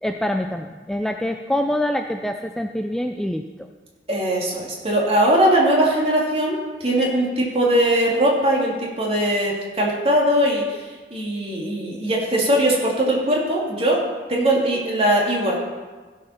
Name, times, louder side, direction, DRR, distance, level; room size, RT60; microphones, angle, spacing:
voice 1, 0.0-3.7, left 1 dB, 5° left, 4 dB, 0.4 m, -25 dB
voice 2, 4.1-14.0 14.3-15.6, right 1 dB, 35° right, -3 dB, 2.6 m, -20 dB
15.5 x 5.6 x 5.8 m, 1.3 s
head